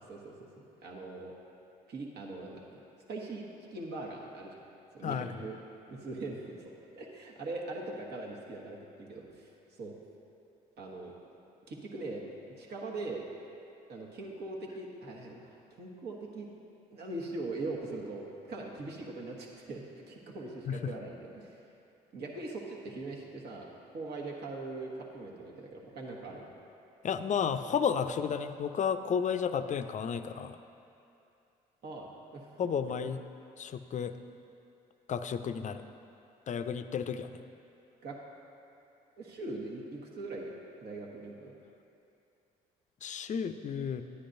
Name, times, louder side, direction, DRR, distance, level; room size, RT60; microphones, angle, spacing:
voice 1, 0.8-1.3 1.9-2.8 3.1-4.5 4.9-5.5 5.9-9.5 9.8-9.9 10.8-11.1 11.7-12.2 12.6-13.2 13.9-16.5 16.9-21.6 22.1-26.5 31.8-32.7 38.0-38.2 39.2-40.5 40.8-41.5, right 2 dB, 60° right, -2 dB, 1.3 m, -41 dB
voice 2, 5.0-5.3 20.7-20.9 27.0-30.6 32.6-33.2 33.6-34.1 35.1-35.8 36.5-37.3 43.0-44.0, left 7 dB, 40° left, 10 dB, 0.4 m, -32 dB
9.9 x 9.8 x 2.6 m, 2.7 s
hypercardioid pair, 60°, 19 cm